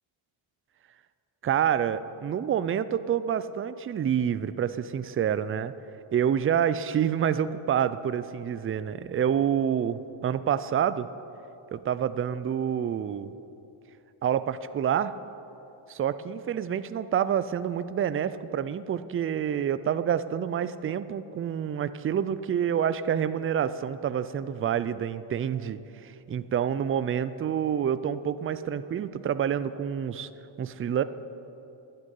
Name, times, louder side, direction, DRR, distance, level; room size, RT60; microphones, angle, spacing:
voice 1, 1.4-5.7 6.1-11.1 11.7-13.3 14.2-15.1 15.9-30.3 30.6-31.0, right 9 dB, 30° right, 14 dB, 0.4 m, -28 dB
11.5 x 6.7 x 9.2 m, 2.9 s
cardioid pair, 95°, 50 cm